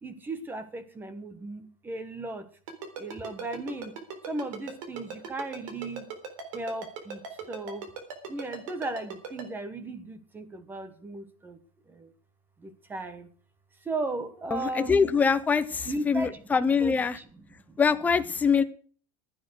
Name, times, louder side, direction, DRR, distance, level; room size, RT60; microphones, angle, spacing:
voice 1, 0.0-2.5 3.0-3.9 4.3-6.1 6.5-7.2 7.5-7.9 8.3-11.6 11.9-12.1 12.6-13.3 13.8-15.1 15.8-17.3 17.7-17.8, right 2 dB, 10° right, 12 dB, 1.1 m, -36 dB
Ringtone, 2.7-9.4, right 6 dB, 65° right, 3.8 m, -38 dB
voice 2, 14.5-17.2 17.8-18.6, left 5 dB, 10° left, 10 dB, 0.6 m, -24 dB
16.0 x 9.2 x 6.4 m, 0.43 s
supercardioid pair, 180°, 19 cm